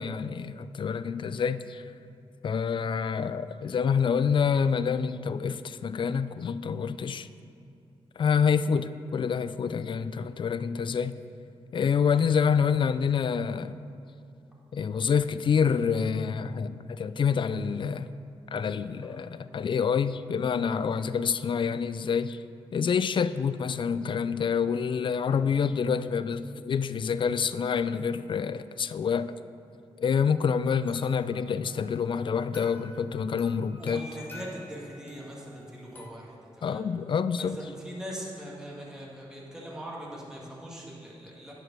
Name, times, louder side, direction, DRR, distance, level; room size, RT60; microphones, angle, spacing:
voice 1, 0.0-1.8 2.4-7.3 8.2-11.2 11.7-13.7 14.7-18.1 18.5-22.4 22.7-29.3 30.0-34.1 36.6-37.6, left 6 dB, 50° left, 14 dB, 0.3 m, -27 dB
voice 2, 18.9-19.2 30.7-30.8 33.8-36.8 37.4-41.5, equal, 5° right, -5 dB, 1.9 m, -41 dB
sound 1, 30.9-36.1, left 2 dB, 20° left, 1.8 m, -49 dB
9.7 x 5.1 x 6.1 m, 2.6 s
cardioid pair, 70°, 10 cm